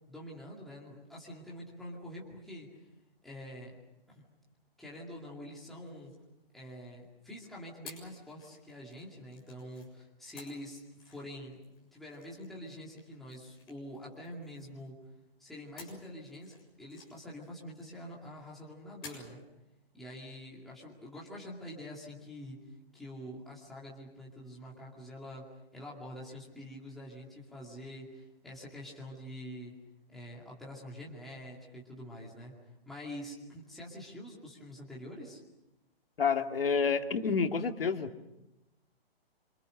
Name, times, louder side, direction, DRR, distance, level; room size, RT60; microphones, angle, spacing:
voice 1, 0.1-2.8 3.2-3.7 4.1-4.2 4.8-6.1 6.5-11.6 11.9-15.0 15.4-19.4 19.9-22.6 22.9-25.5 25.7-29.7 30.1-32.5 32.9-35.4, equal, ahead, -5 dB, 2.3 m, -46 dB
sound 1, 5.5-7.0 7.9-9.9 10.4-15.0 15.8-18.3 19.0-19.5, left 4 dB, 25° left, 7.1 m, -55 dB
voice 2, 36.2-38.1, left 5 dB, 65° left, 6 dB, 2.2 m, -29 dB
28.0 x 26.5 x 6.5 m, 0.95 s
hypercardioid pair, 175°, 30 cm